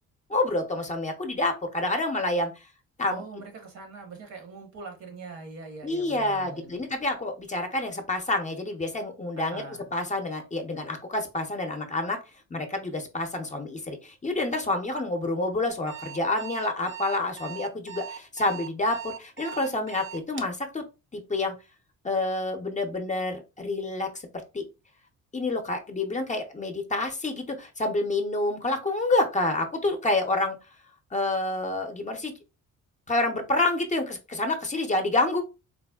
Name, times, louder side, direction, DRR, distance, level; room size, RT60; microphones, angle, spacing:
voice 1, 0.3-2.5 3.0-3.2 5.8-9.6 9.9-12.2 12.5-20.8 21.1-21.5 22.0-24.1 24.5-24.6 25.3-30.6 31.1-32.3 33.1-35.4, left 2 dB, 25° left, 0.6 m, -28 dB
voice 2, 3.1-6.8 9.4-9.9, right 3 dB, 65° right, 1.1 m, -42 dB
Alarm, 15.9-20.6, right 8 dB, 40° right, 0.6 m, -39 dB
4.0 x 2.0 x 2.3 m
cardioid pair, 90°, 30 cm